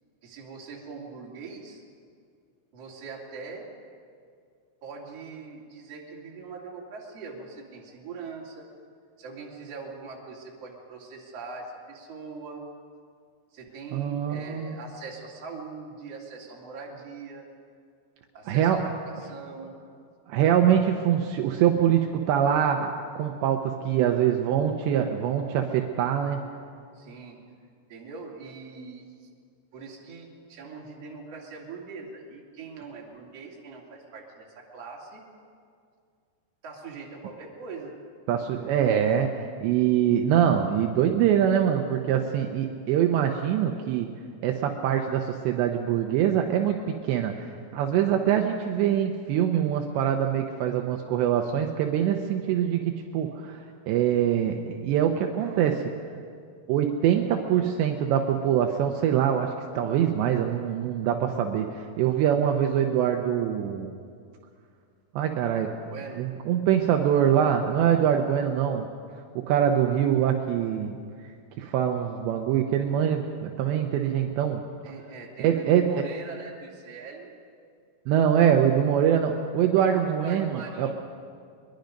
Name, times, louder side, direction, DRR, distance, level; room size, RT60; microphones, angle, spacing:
voice 1, 0.2-1.8 2.7-3.7 4.8-8.6 9.2-12.6 13.5-17.5 18.3-19.7 26.9-27.4 27.9-29.3 29.7-35.2 36.6-38.0 62.3-62.4 65.8-66.2 74.8-77.3 79.8-81.0, right 4 dB, 40° right, -2 dB, 3.2 m, -42 dB
voice 2, 13.9-14.8 18.5-18.9 20.3-26.4 38.3-44.1 44.4-55.9 56.7-64.0 65.2-65.8 66.2-68.9 69.4-71.0 71.6-74.6 75.4-76.1 78.1-80.9, right 9 dB, 80° right, 4 dB, 2.9 m, -24 dB
22.5 x 22.0 x 5.3 m, 2.2 s
omnidirectional pair, 5.3 m